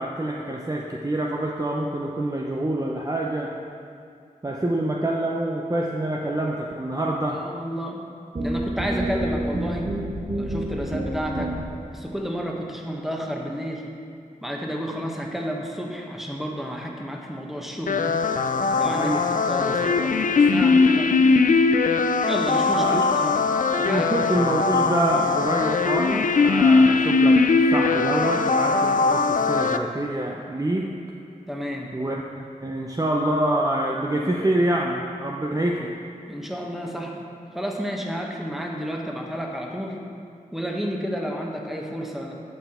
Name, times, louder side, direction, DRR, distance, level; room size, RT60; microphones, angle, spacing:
voice 1, 0.0-3.5 4.4-7.4 18.8-19.3 19.6-19.8 22.8-23.1 23.8-27.4 27.7-30.9 31.9-35.9, right 1 dB, 25° right, -2 dB, 0.7 m, -26 dB
voice 2, 7.3-8.1 8.4-10.0 10.3-11.5 11.9-13.8 14.4-18.2 18.8-19.1 19.4-21.2 22.3-23.5 23.8-24.1 31.5-31.9 36.3-37.2 37.5-40.0 40.5-42.3, equal, ahead, 0 dB, 1.3 m, -31 dB
sound 1, 8.4-11.9, right 1 dB, 55° right, 1.1 m, -28 dB
sound 2, 17.9-29.8, left 4 dB, 65° left, 0.4 m, -20 dB
9.3 x 5.7 x 4.4 m, 2.4 s
cardioid pair, 40°, 15 cm